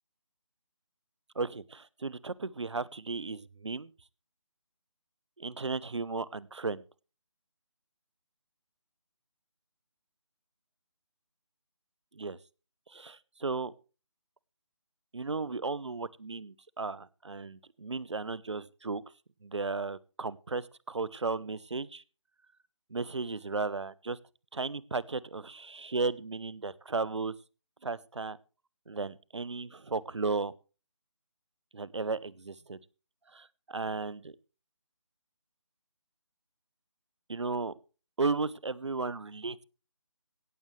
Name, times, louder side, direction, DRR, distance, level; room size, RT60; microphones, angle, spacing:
voice 1, 1.3-3.9 5.4-6.8 12.1-12.4 12.9-13.7 15.1-19.0 19.4-22.0 22.9-24.2 24.5-27.3 27.8-28.4 28.9-30.5 31.7-32.8 33.3-34.3 37.3-37.7 38.2-39.6, right 4 dB, 65° right, 21 dB, 0.9 m, -35 dB
17.0 x 14.0 x 3.3 m, 0.34 s
figure-of-eight pair, 155°, 16 cm